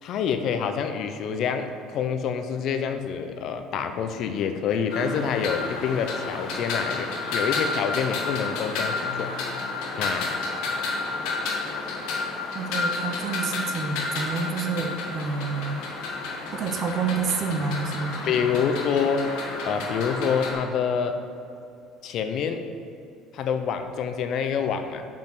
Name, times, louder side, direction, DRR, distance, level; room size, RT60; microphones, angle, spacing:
voice 1, 0.0-9.3 10.0-10.4 18.3-19.2 19.6-21.2 22.0-22.6 23.3-25.1, left 7 dB, 55° left, 7 dB, 0.6 m, -27 dB
sound 1, 4.9-20.5, left 3 dB, 80° left, 1.4 m, -31 dB
voice 2, 12.5-15.8 16.5-18.3, right 5 dB, 45° right, 4 dB, 0.6 m, -29 dB
5.4 x 5.3 x 6.1 m, 2.6 s
cardioid pair, 130°, 0 cm